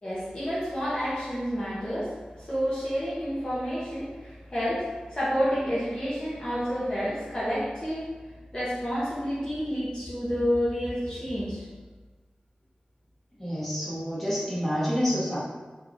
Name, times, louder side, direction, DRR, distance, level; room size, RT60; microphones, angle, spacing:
voice 1, 0.0-8.1 8.5-11.6, equal, 35° left, -10 dB, 1.0 m, -29 dB
voice 2, 13.4-15.4, equal, 5° left, -9 dB, 1.4 m, -28 dB
4.4 x 3.0 x 2.6 m, 1.3 s
wide cardioid pair, 80°, 3 cm